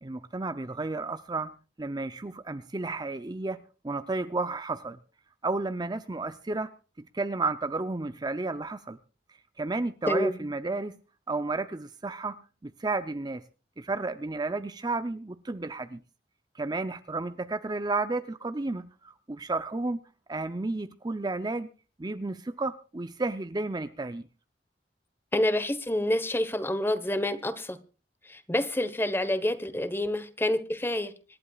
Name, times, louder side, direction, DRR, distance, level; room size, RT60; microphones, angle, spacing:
voice 1, 0.0-1.5 1.8-5.0 5.4-6.7 7.0-9.0 9.6-11.0 11.3-12.4 12.6-13.4 13.8-16.0 16.5-20.0 20.3-21.7 22.0-24.3, right 3 dB, 25° right, 0.6 m, -32 dB
voice 2, 10.0-10.4 25.3-27.8 28.3-31.1, left 1 dB, 15° left, 1.1 m, -28 dB
26.0 x 11.5 x 2.4 m
head